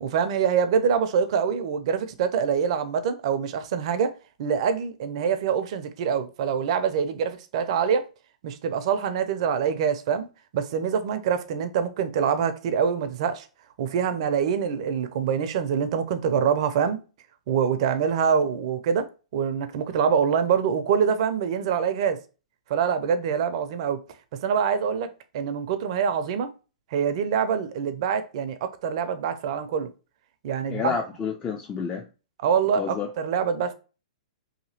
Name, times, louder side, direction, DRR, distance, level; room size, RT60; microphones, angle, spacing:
voice 1, 0.0-4.1 4.4-8.0 8.4-10.3 10.5-13.5 13.8-17.0 17.5-19.0 19.3-22.2 22.7-24.0 24.4-26.5 26.9-29.9 30.4-31.0 32.4-33.7, right 7 dB, 55° right, 0.5 m, -25 dB
voice 2, 30.7-32.1 32.8-33.1, left 6 dB, 20° left, 0.4 m, -29 dB
2.8 x 2.7 x 2.7 m
hypercardioid pair, 120°, 4 cm